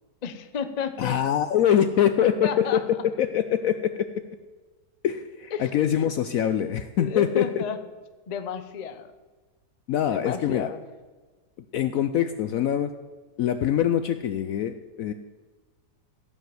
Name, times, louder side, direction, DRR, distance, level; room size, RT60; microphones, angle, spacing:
voice 1, 0.2-1.2 2.4-2.8 5.5-5.7 7.0-7.8 8.3-9.1 10.1-10.8, left 7 dB, 40° left, 9 dB, 0.6 m, -32 dB
voice 2, 1.0-4.1 5.0-7.4 9.9-10.7 11.7-12.9 13.4-15.1, left 9 dB, 70° left, 10 dB, 0.8 m, -24 dB
16.0 x 5.6 x 7.7 m, 1.3 s
omnidirectional pair, 1.8 m